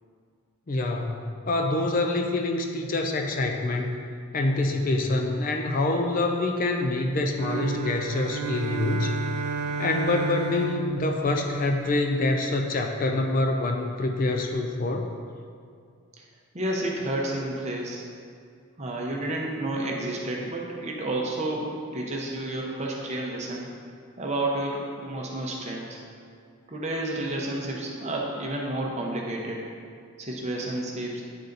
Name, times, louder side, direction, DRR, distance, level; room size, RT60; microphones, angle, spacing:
voice 1, 0.7-4.0 4.3-9.2 9.8-15.1, left 2 dB, 40° left, 4 dB, 0.4 m, -26 dB
sound 1, 7.3-12.0, right 4 dB, 90° right, 0.4 m, -32 dB
voice 2, 16.5-18.0 18.8-23.7 24.2-26.0 26.7-29.6 30.2-31.2, right 1 dB, 30° right, -2 dB, 0.8 m, -30 dB
9.4 x 4.0 x 3.9 m, 2.2 s
head